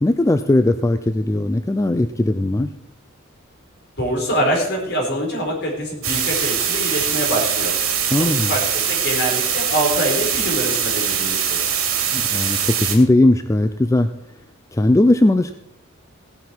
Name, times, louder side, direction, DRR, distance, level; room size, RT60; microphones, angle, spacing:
voice 1, 0.0-2.7 8.1-8.5 12.1-14.1 14.7-15.5, left 1 dB, 15° left, 10 dB, 0.3 m, -18 dB
voice 2, 4.0-7.7 8.2-11.6, equal, 55° left, 0 dB, 4.4 m, -24 dB
sound 1, 6.0-13.0, right 8 dB, 85° right, 2.6 m, -22 dB
16.5 x 9.3 x 4.5 m, 0.79 s
head